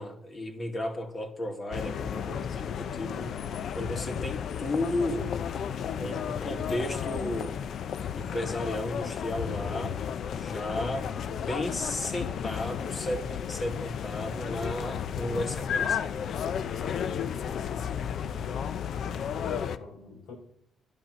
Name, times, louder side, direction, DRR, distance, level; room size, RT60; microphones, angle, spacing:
voice 1, 0.0-3.3 3.7-5.3 6.0-7.6 8.2-10.0 10.3-16.1, left 1 dB, 35° left, 3 dB, 2.5 m, -34 dB
sound 1, 1.7-19.8, left 8 dB, 65° left, 0.7 m, -33 dB
voice 2, 16.9-20.3, left 3 dB, 85° left, -2 dB, 6.5 m, -47 dB
12.0 x 11.0 x 6.3 m, 0.67 s
cardioid pair, 90°, 0 cm